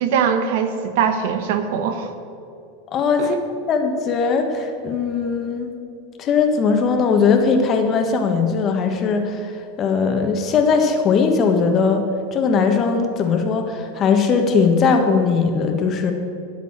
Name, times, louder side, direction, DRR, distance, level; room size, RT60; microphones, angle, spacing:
voice 1, 0.0-2.1 3.2-3.3, right 7 dB, 70° right, 8 dB, 1.3 m, -21 dB
voice 2, 2.9-3.3 3.7-5.7 6.2-9.5 9.8-12.0 12.3-16.1, left 5 dB, 35° left, 5 dB, 1.5 m, -19 dB
11.0 x 8.0 x 7.4 m, 2.6 s
hypercardioid pair, 115°, 0 cm